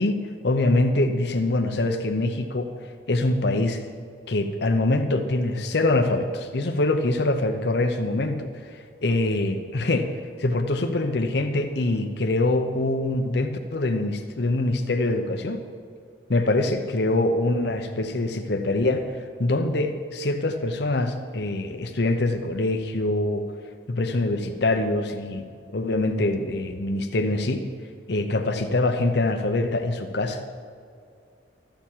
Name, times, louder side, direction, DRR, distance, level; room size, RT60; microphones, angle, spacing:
voice 1, 0.0-2.7 3.1-3.8 4.3-10.1 10.4-15.6 16.3-23.4 23.9-25.5 25.7-27.7 28.1-30.4, left 2 dB, 60° left, 6 dB, 0.7 m, -24 dB
13.5 x 7.1 x 7.3 m, 2.3 s
head